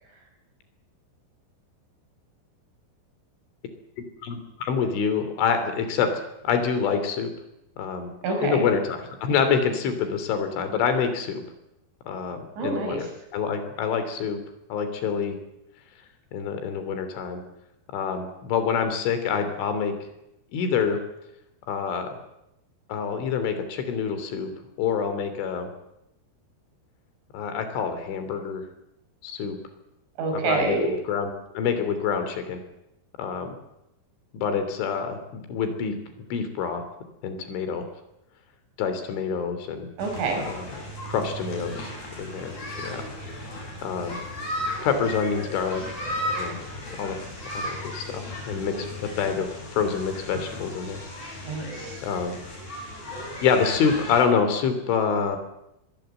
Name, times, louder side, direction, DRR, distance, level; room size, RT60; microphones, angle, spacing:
voice 1, 4.2-6.1 6.4-7.3 7.8-8.1 8.4-11.4 12.1-14.4 14.7-15.4 16.3-17.4 17.9-19.9 20.5-21.0 21.7-22.1 22.9-24.5 24.8-25.7 27.3-28.6 29.2-29.6 30.3-31.3 31.6-32.6 33.2-33.6 34.3-36.0 36.3-36.8 37.2-37.9 38.8-39.9 40.5-40.7 41.1-41.9 42.2-42.6 42.8-43.1 43.5-43.6 43.8-44.2 44.8-45.8 46.3-46.6 47.0-47.2 47.6-51.0 51.3-51.4 52.0-52.4 53.4-55.4, left 6 dB, 80° left, 9 dB, 5.5 m, -26 dB
voice 2, 8.2-8.6 12.6-13.1 30.2-30.9 40.0-40.4 51.4-52.0, right 3 dB, 70° right, 3 dB, 8.1 m, -27 dB
sound 1, 40.0-54.2, left 1 dB, 40° left, 8.1 m, -35 dB
24.0 x 21.0 x 8.1 m, 0.86 s
omnidirectional pair, 5.5 m